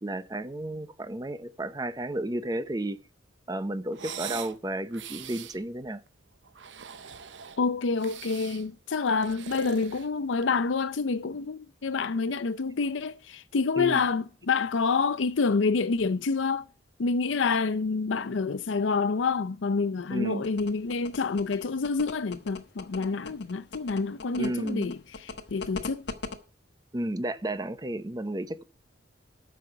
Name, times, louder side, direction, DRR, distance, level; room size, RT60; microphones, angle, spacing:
voice 1, 0.0-3.0 3.5-6.0 13.8-14.0 20.1-20.4 24.4-24.9 26.9-28.6, right 1 dB, 20° right, 0.7 m, -32 dB
sound 1, 3.9-4.6 4.9-5.6 6.4-7.6 8.0-8.7 9.1-10.6, right 8 dB, 75° right, 0.8 m, -41 dB
voice 2, 7.6-16.7 17.0-26.0, left 4 dB, 85° left, 0.6 m, -28 dB
sound 2, 20.4-26.4, left 3 dB, 65° left, 1.2 m, -38 dB
13.0 x 5.7 x 5.7 m
head